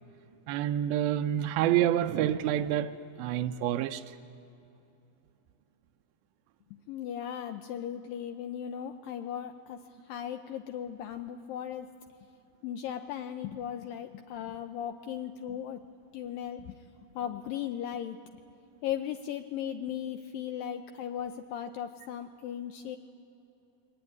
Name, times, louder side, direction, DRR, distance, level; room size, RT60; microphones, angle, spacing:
voice 1, 0.5-2.9 3.2-4.2, right 11 dB, 80° right, 2.2 m, -28 dB
voice 2, 6.9-9.8 10.1-11.9 12.6-15.8 16.1-16.7 17.2-18.2 18.8-23.0, left 9 dB, 80° left, 2.0 m, -37 dB
23.0 x 19.5 x 9.5 m
omnidirectional pair, 4.8 m